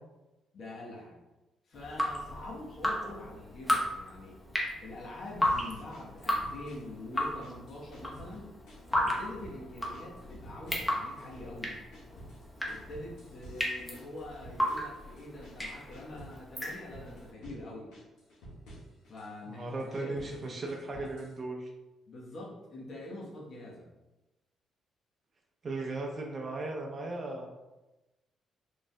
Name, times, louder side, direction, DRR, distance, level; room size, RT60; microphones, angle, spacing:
voice 1, 0.5-1.2 1.6-4.4 4.8-8.5 9.0-11.7 12.7-17.9 19.1-19.7 20.0-21.1 22.1-23.9, left 1 dB, 60° left, -4 dB, 1.0 m, -45 dB
Drip, 1.7-17.2, equal, 10° left, 0.9 m, -34 dB
sound 1, 5.4-6.9 7.2-8.4 8.7-9.6 9.9-11.4 11.7-16.4 16.7-17.6 17.9-19.3 19.7-21.4, right 1 dB, 90° left, 1.5 m, -51 dB
voice 2, 19.5-21.7 25.6-27.5, right 2 dB, 40° right, 0 dB, 0.6 m, -37 dB
5.1 x 3.3 x 2.2 m, 1.0 s
cardioid pair, 90°, 0 cm